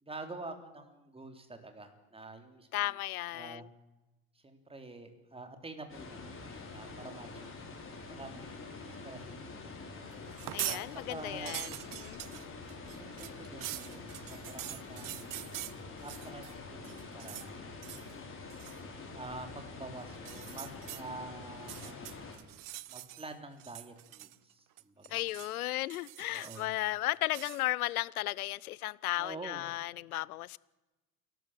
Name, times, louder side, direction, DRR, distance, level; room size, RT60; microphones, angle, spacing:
voice 1, 0.0-2.7 3.3-3.7 4.4-7.5 8.2-9.5 10.6-11.8 12.9-15.5 16.0-18.5 19.1-22.1 22.9-25.2 26.3-26.7 29.2-29.7, right 2 dB, 15° right, 3.6 m, -47 dB
voice 2, 2.7-3.7 10.5-12.2 25.1-30.6, left 17 dB, 90° left, 0.6 m, -35 dB
sound 1, 5.9-22.4, left 3 dB, 30° left, 6.0 m, -46 dB
sound 2, 10.3-10.8 11.2-16.5 16.8-17.5 17.8-18.1 18.5-18.8 20.1-21.0 21.6-23.3 23.6-24.5 24.8-25.5 25.9-26.8 27.3-27.6, right 16 dB, 50° right, 0.9 m, -43 dB
28.5 x 12.5 x 7.6 m
hypercardioid pair, 80°, 43 cm